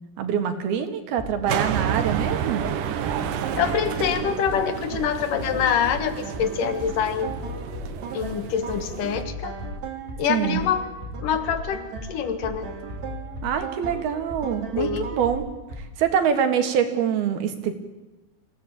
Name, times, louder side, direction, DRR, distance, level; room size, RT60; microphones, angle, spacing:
voice 1, 0.2-2.7 10.3-10.6 13.4-15.5 16.0-17.7, right 8 dB, 80° right, 7 dB, 3.9 m, -24 dB
Bass drum, 1.2-16.2, left 2 dB, 15° left, 5.7 m, -37 dB
sound 1, 1.5-9.2, right 9 dB, 65° right, 2.6 m, -30 dB
sound 2, 2.6-15.4, right 6 dB, 50° right, 3.2 m, -39 dB
voice 2, 3.6-7.3 8.1-9.5 10.2-10.8 11.2-12.7 14.8-15.1, left 8 dB, 65° left, 10 dB, 3.0 m, -25 dB
26.0 x 17.0 x 8.7 m, 1.1 s
omnidirectional pair, 4.3 m